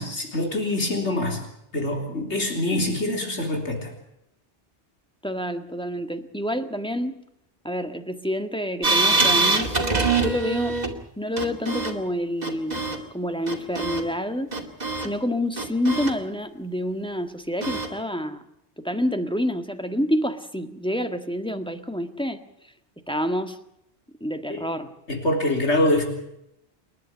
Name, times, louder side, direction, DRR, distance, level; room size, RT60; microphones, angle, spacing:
voice 1, 0.0-1.4 1.7-3.9 24.5-24.6 25.1-26.0, left 1 dB, 90° left, 3 dB, 4.1 m, -24 dB
voice 2, 5.2-7.2 7.6-9.7 10.2-10.8 11.2-12.9 13.1-14.5 15.0-18.4 18.8-22.4 23.1-23.6 24.2-24.9, equal, 5° left, 6 dB, 1.6 m, -28 dB
sound 1, 8.8-11.0 11.4-11.9 12.4-13.0 13.5-14.0 14.5-15.1 15.6-16.1 17.6-17.9, right 3 dB, 40° right, 2.6 m, -23 dB
29.0 x 11.0 x 9.9 m, 0.80 s
omnidirectional pair, 1.1 m